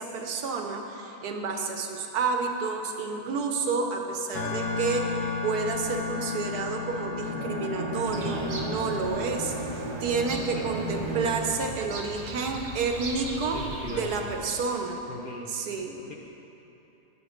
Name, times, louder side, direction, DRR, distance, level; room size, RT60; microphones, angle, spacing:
voice 1, 0.0-13.6 13.9-15.0 15.5-16.0, right 4 dB, 85° right, 4 dB, 1.4 m, -30 dB
sound 1, 4.3-9.8, left 4 dB, 75° left, 1.2 m, -33 dB
Bowed string instrument, 7.2-11.6, right 1 dB, 20° right, 1.1 m, -34 dB
Bird vocalization bird call bird song, 8.0-14.8, right 2 dB, 55° right, 1.3 m, -39 dB
voice 2, 13.5-14.2 15.1-15.6 16.0-16.1, left 2 dB, 45° left, -1 dB, 0.8 m, -39 dB
12.5 x 7.4 x 5.1 m, 3.0 s
omnidirectional pair, 1.6 m